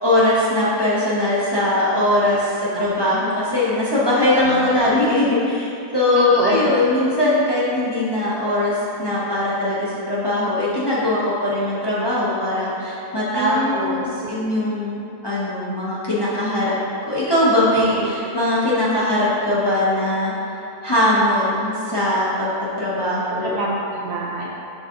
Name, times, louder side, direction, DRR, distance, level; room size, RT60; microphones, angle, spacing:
voice 1, 0.0-5.7 5.9-16.7 17.0-23.6, left 1 dB, 20° left, -8 dB, 0.7 m, -20 dB
voice 2, 6.1-6.8 13.3-14.3 17.8-18.1 23.4-24.6, right 2 dB, 65° right, -4 dB, 0.7 m, -27 dB
6.4 x 3.9 x 3.7 m, 2.8 s
omnidirectional pair, 1.5 m